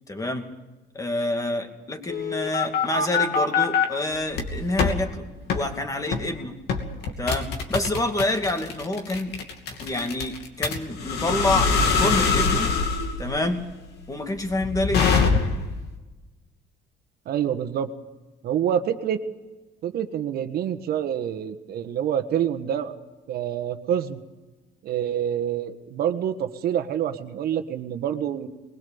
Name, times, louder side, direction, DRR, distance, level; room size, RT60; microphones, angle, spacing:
voice 1, 0.1-0.5 0.9-6.6 7.2-9.3 9.8-12.7 13.2-13.6 14.1-15.0, left 2 dB, 20° left, 5 dB, 2.4 m, -27 dB
sound 1, 2.1-3.9 4.3-5.0 5.5-5.7 6.1-6.3 6.7-15.7, left 5 dB, 75° left, 2.7 m, -24 dB
voice 2, 17.2-17.9 18.4-19.2 19.8-22.9 23.3-24.2 24.8-28.5, right 9 dB, 65° right, 9 dB, 1.4 m, -27 dB
21.0 x 20.5 x 7.1 m, 1.2 s
cardioid pair, 110°, 17 cm